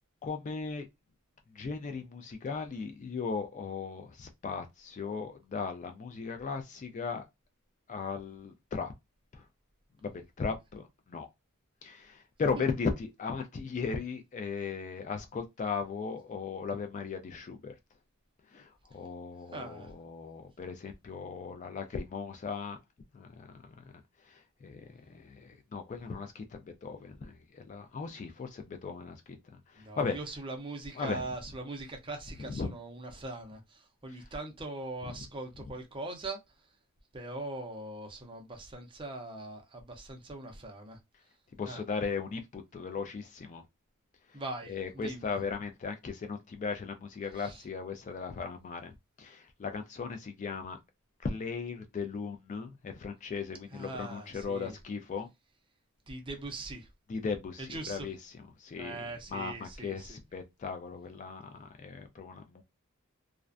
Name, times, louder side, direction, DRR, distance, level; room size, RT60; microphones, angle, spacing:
voice 1, 0.2-0.9 1.5-7.2 7.9-8.9 9.3-9.5 10.0-11.3 11.8-17.8 18.5-22.8 23.1-23.8 24.2-30.2 31.0-31.2 32.4-32.7 41.6-43.6 44.3-44.4 44.7-50.8 51.2-55.3 57.1-58.2 58.6-59.0 59.3-62.6, left 5 dB, 35° left, 0.3 m, -37 dB
voice 2, 19.5-19.9 29.8-36.7 37.1-41.0 41.7-41.8 44.3-45.4 47.3-47.6 53.7-54.8 56.1-56.9 57.6-58.1 58.8-60.2, right 2 dB, 20° right, 0.5 m, -41 dB
2.4 x 2.1 x 2.4 m
head